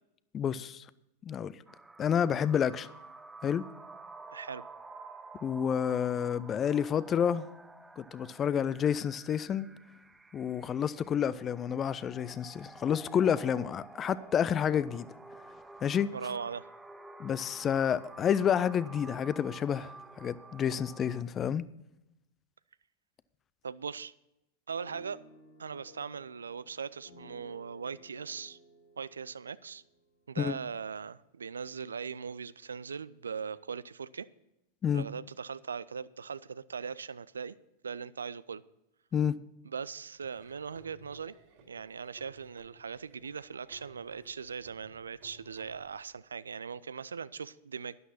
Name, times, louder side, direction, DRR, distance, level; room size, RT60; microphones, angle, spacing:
voice 1, 0.3-0.9 1.2-1.5 2.0-2.9 3.4-3.6 5.4-7.5 8.0-9.7 10.3-15.1 15.8-16.1 17.2-21.6 30.4-30.6 34.8-35.0 39.1-39.4, left 8 dB, 25° left, 0.5 m, -29 dB
sound 1, 1.7-21.2, right 3 dB, 10° right, 0.7 m, -51 dB
voice 2, 4.3-4.6 16.1-16.7 23.6-24.1 24.7-25.2 25.6-28.6 29.0-29.8 30.3-34.3 34.9-37.6 37.8-38.6 39.6-41.4 41.7-48.0, right 6 dB, 70° right, 0.4 m, -40 dB
sound 2, 24.8-30.8, equal, 75° left, 4.0 m, -57 dB
Laughter / Drum, 40.2-46.2, right 3 dB, 45° right, 2.6 m, -59 dB
12.0 x 11.0 x 4.2 m
figure-of-eight pair, 90°, 0 cm